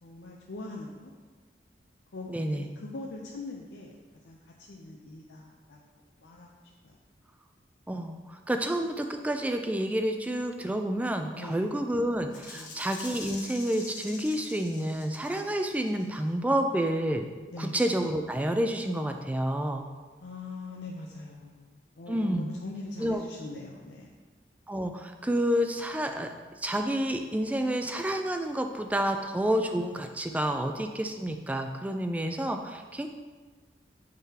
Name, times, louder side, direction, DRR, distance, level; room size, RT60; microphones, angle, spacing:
voice 1, 0.0-1.1 2.1-4.0 4.2-5.8 6.2-6.5 6.8-6.9 11.4-11.6 12.5-12.8 17.5-17.8 20.2-24.1, left 2 dB, 80° left, -1 dB, 0.5 m, -42 dB
voice 2, 2.3-2.7 7.9-17.3 17.6-19.8 22.1-22.5 23.0-23.2 24.7-26.3 26.6-33.1, right 1 dB, 10° right, 6 dB, 0.3 m, -29 dB
Rattle (instrument), 12.3-16.2, left 4 dB, 50° left, 1.0 m, -45 dB
9.0 x 3.8 x 2.8 m, 1.4 s
head